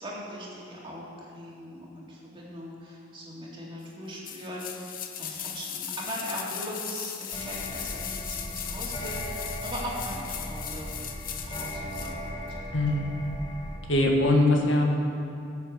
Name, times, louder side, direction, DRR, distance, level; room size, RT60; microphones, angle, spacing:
voice 1, 0.0-4.9 5.2-11.0 11.2-12.8, equal, 25° right, -4 dB, 2.5 m, -40 dB
sound 1, 4.2-12.2 12.5-12.6, left 9 dB, 45° left, 0.7 m, -38 dB
sound 2, 7.3-13.8, left 1 dB, 25° left, 1.2 m, -37 dB
voice 2, 12.7-13.1 13.9-14.8, left 1 dB, 65° left, 1 dB, 1.7 m, -22 dB
15.0 x 7.4 x 6.5 m, 2.6 s
head